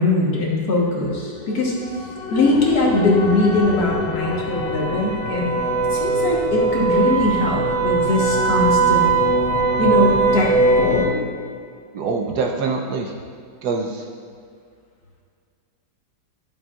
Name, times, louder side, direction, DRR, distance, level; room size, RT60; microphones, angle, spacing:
voice 1, 0.0-1.7 2.3-5.6 5.9-9.1 9.8-11.2, left 2 dB, 60° left, -3 dB, 1.7 m, -21 dB
sound 1, 1.3-11.1, right 3 dB, 85° left, 1.7 m, -21 dB
voice 2, 11.9-13.1 13.6-14.1, right 4 dB, 70° right, 2 dB, 1.1 m, -24 dB
11.5 x 7.4 x 2.4 m, 2.2 s
omnidirectional pair, 2.0 m